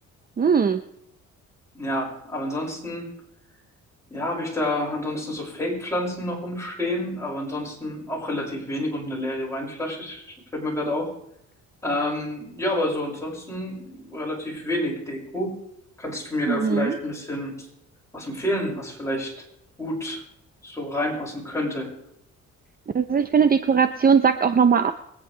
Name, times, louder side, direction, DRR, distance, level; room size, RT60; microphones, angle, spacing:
voice 1, 0.4-0.8 16.5-16.9 22.9-24.9, right 6 dB, 30° right, 10 dB, 0.7 m, -19 dB
voice 2, 1.7-3.1 4.1-10.2 10.5-11.1 11.8-15.5 16.0-17.5 18.1-19.3 19.8-20.2 20.6-21.9, left 1 dB, 10° left, -4 dB, 6.3 m, -29 dB
24.0 x 9.8 x 3.4 m, 0.75 s
cardioid pair, 90°, 30 cm